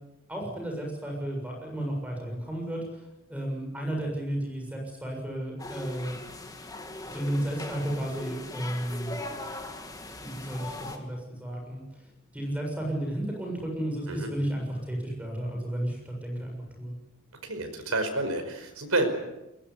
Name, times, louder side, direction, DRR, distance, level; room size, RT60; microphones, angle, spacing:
voice 1, 0.3-3.0 3.3-6.1 7.1-9.2 10.2-12.1 12.3-17.0, right 1 dB, 5° right, 1 dB, 7.1 m, -33 dB
sound 1, 5.6-11.0, left 2 dB, 15° left, 2.1 m, -40 dB
voice 2, 17.4-19.1, right 2 dB, 85° right, 6 dB, 5.3 m, -29 dB
22.0 x 20.5 x 9.9 m, 0.94 s
head